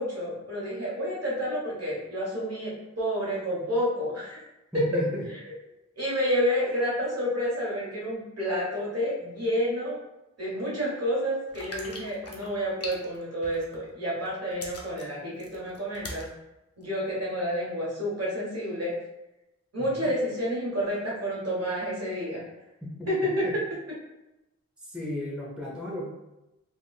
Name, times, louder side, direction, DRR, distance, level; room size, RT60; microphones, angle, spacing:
voice 1, 0.0-4.4 6.0-10.0 10.4-16.2 16.8-18.9 19.7-22.4 23.1-23.5, equal, 60° right, -6 dB, 1.3 m, -29 dB
voice 2, 4.7-5.3 19.8-20.1 22.8-23.1 23.4-23.5 24.8-26.1, left 1 dB, 5° right, -4 dB, 0.7 m, -34 dB
sound 1, 11.5-13.9 14.3-16.3 16.8-16.9, left 1 dB, 55° left, 0.6 m, -41 dB
3.4 x 2.5 x 2.3 m, 0.95 s
wide cardioid pair, 65°, 29 cm